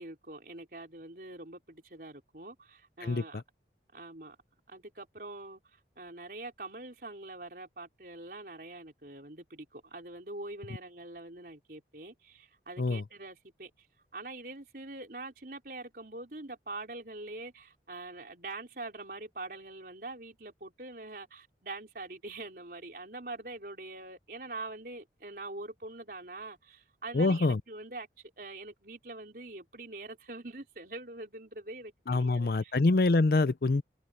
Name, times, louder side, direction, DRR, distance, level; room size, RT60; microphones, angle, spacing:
voice 1, 0.0-3.4 3.9-4.4 4.7-13.7 14.1-28.1 28.4-32.8, right 2 dB, 55° right, 4.4 m, -44 dB
voice 2, 27.1-27.6 32.1-33.8, left 3 dB, 55° left, 0.5 m, -25 dB
head